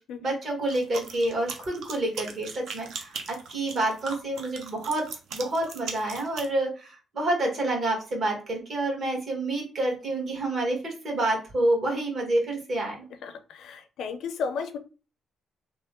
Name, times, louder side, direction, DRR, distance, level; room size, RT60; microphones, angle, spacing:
voice 1, 0.2-5.0 5.3-13.0, right 1 dB, 50° right, 0 dB, 1.4 m, -28 dB
sound 1, 0.7-6.5, right 5 dB, 75° right, 0.6 m, -39 dB
voice 2, 13.2-14.8, left 5 dB, 75° left, 8 dB, 0.5 m, -33 dB
3.0 x 2.1 x 3.5 m, 0.34 s
cardioid pair, 90°, 0 cm